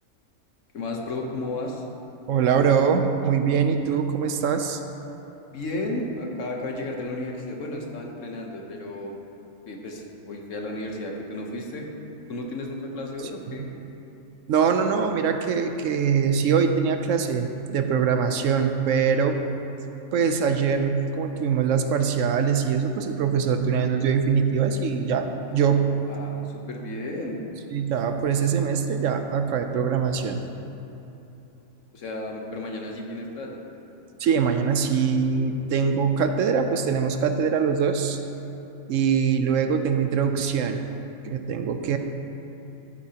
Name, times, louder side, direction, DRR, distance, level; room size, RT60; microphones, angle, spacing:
voice 1, 0.7-1.9 5.5-9.1 9.6-11.9 12.3-13.7 25.7-27.4 31.9-33.6, left 2 dB, 60° left, 1 dB, 1.3 m, -33 dB
voice 2, 2.3-4.8 13.5-13.7 14.5-19.4 20.1-26.0 27.7-30.5 34.2-38.2 38.9-40.8 41.2-42.0, right 6 dB, 70° right, 6 dB, 0.9 m, -23 dB
14.0 x 8.4 x 2.9 m, 2.9 s
omnidirectional pair, 1.5 m